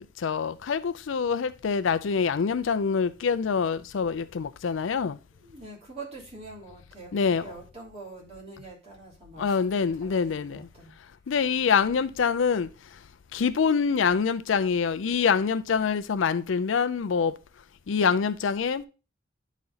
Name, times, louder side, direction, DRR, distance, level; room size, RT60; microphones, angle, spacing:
voice 1, 0.0-5.2 7.1-7.4 9.4-10.6 11.3-12.7 13.3-17.3 17.9-18.9, left 6 dB, 70° left, 0.4 m, -25 dB
voice 2, 5.4-10.9, right 3 dB, 35° right, 3.1 m, -45 dB
9.6 x 4.1 x 3.9 m
head